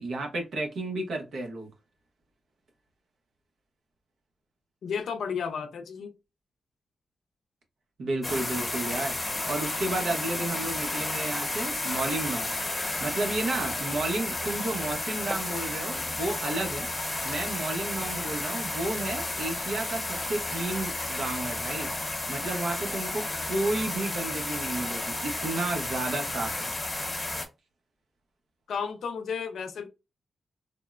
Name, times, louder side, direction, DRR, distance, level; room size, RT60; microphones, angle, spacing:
voice 1, 0.0-1.7 8.0-9.2 9.5-12.6 13.0-16.9 17.2-21.9 22.3-26.7, right 2 dB, 80° right, 0.9 m, -32 dB
voice 2, 4.8-6.1 28.7-29.9, left 6 dB, 80° left, 0.5 m, -33 dB
sound 1, 8.2-27.5, left 2 dB, 20° left, 0.8 m, -32 dB
3.5 x 2.1 x 2.4 m
cardioid pair, 90°, 0 cm